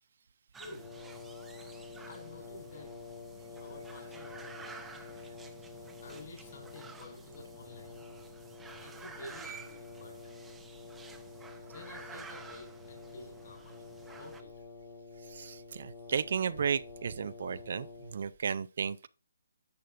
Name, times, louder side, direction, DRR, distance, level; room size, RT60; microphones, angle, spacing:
sound 1, 0.5-14.4, right 5 dB, 5° right, 0.6 m, -52 dB
voice 1, 0.6-1.0 2.0-3.1 3.6-4.8 6.0-8.0 8.8-10.3 11.7-14.6, left 2 dB, 50° left, 3.9 m, -51 dB
Brass instrument, 0.6-18.4, left 4 dB, 10° left, 1.5 m, -49 dB
voice 2, 15.3-19.1, right 7 dB, 55° right, 0.4 m, -34 dB
10.5 x 6.4 x 2.5 m
hypercardioid pair, 150°, 0 cm